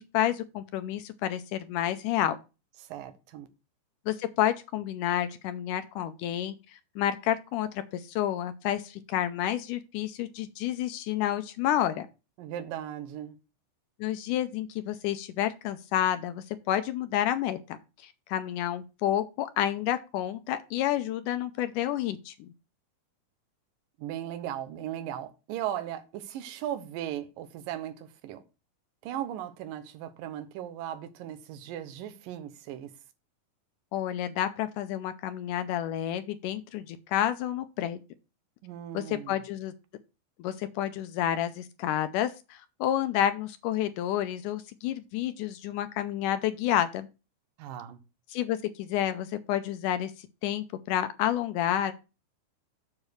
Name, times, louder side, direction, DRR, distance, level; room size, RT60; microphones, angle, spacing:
voice 1, 0.0-2.4 4.1-12.1 14.0-22.5 33.9-38.0 38.9-39.7 40.4-47.1 48.3-51.9, left 11 dB, 80° left, 1.9 m, -30 dB
voice 2, 2.9-3.5 12.4-13.4 24.0-28.4 29.0-32.9 38.6-39.4 47.6-48.0, right 11 dB, 75° right, 2.5 m, -37 dB
7.4 x 4.7 x 6.3 m
omnidirectional pair, 4.1 m